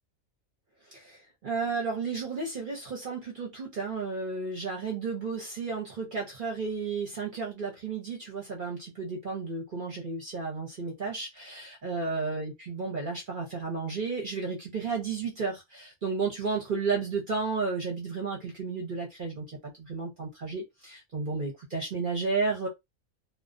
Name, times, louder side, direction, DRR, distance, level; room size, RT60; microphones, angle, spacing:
voice 1, 0.9-22.7, right 4 dB, 45° right, 0.7 m, -33 dB
2.4 x 2.1 x 2.5 m
omnidirectional pair, 1.4 m